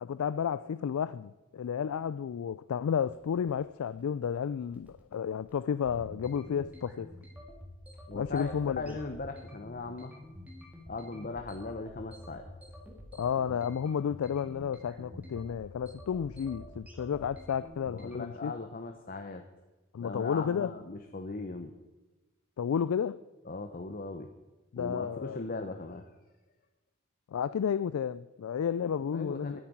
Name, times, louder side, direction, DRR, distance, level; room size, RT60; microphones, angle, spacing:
voice 1, 0.0-7.1 8.1-8.9 13.1-18.5 19.9-20.7 22.6-23.2 24.7-25.4 27.3-29.6, left 7 dB, 90° left, 0.3 m, -32 dB
sound 1, 3.0-18.2, left 1 dB, 5° right, 2.1 m, -49 dB
voice 2, 8.1-10.1 10.9-12.5 17.9-19.4 20.0-21.7 23.5-24.3 24.8-26.1 29.0-29.6, left 3 dB, 40° left, 0.8 m, -39 dB
10.0 x 8.5 x 9.2 m
head